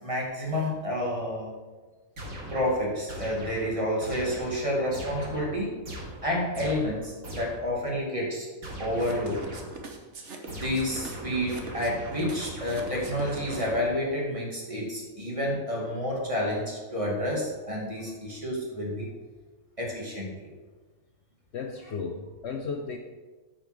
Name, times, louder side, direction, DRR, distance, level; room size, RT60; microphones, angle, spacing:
voice 1, 0.0-1.5 2.5-5.8 6.2-8.5 8.8-9.4 10.5-19.1 19.8-20.5, left 1 dB, 25° right, -3 dB, 2.2 m, -29 dB
sound 1, 2.2-7.8 8.6-9.9 10.5-14.2, right 1 dB, 80° right, 2.6 m, -40 dB
sound 2, 8.9-13.9, right 4 dB, 60° right, 1.3 m, -43 dB
voice 2, 21.5-23.0, left 5 dB, 60° left, 3 dB, 0.9 m, -34 dB
8.7 x 5.5 x 6.0 m, 1.3 s
omnidirectional pair, 1.4 m